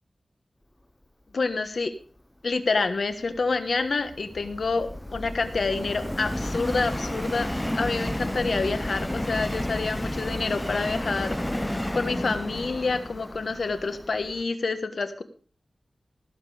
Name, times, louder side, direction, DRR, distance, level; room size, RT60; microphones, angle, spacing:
voice 1, 1.3-1.9 2.4-7.5 7.7-11.4 11.7-15.2, left 4 dB, 75° left, 10 dB, 1.3 m, -28 dB
Subway metro underground, 3.1-14.4, left 1 dB, 10° left, 0.9 m, -32 dB
16.5 x 7.6 x 5.0 m, 0.42 s
cardioid pair, 55°, 0 cm